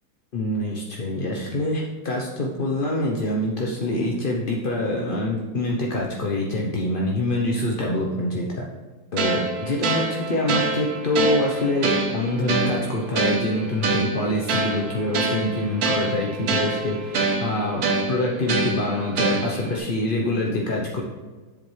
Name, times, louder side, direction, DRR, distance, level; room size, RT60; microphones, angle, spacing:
voice 1, 0.3-8.7 9.1-21.0, left 1 dB, 50° left, -2 dB, 0.6 m, -25 dB
sound 1, 9.2-19.8, right 3 dB, 60° right, 1.3 m, -26 dB
7.5 x 7.4 x 3.2 m, 1.3 s
omnidirectional pair, 2.0 m